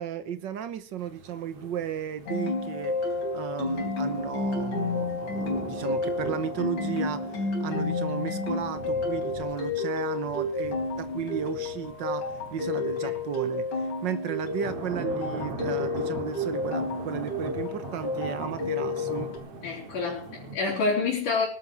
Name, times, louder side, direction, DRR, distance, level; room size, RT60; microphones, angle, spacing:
voice 1, 0.0-19.3, right 8 dB, 85° right, 12 dB, 0.9 m, -34 dB
sound 1, 1.0-20.6, right 3 dB, 50° right, 3.1 m, -41 dB
sound 2, 2.3-19.4, left 3 dB, 75° left, 5.4 m, -31 dB
voice 2, 19.6-21.5, left 4 dB, 90° left, -6 dB, 5.4 m, -28 dB
20.0 x 12.5 x 4.6 m, 0.40 s
omnidirectional pair, 3.5 m